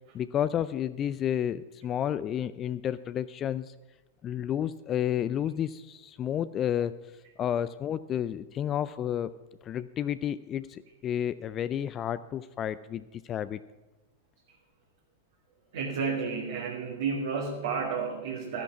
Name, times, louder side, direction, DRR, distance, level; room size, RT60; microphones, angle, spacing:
voice 1, 0.1-3.7 4.2-6.9 7.4-9.3 9.6-13.6, left 10 dB, 30° left, 14 dB, 0.4 m, -31 dB
voice 2, 15.7-18.6, right 5 dB, 60° right, 0 dB, 1.7 m, -31 dB
13.5 x 10.5 x 5.9 m, 1.1 s
figure-of-eight pair, 90°, 0 cm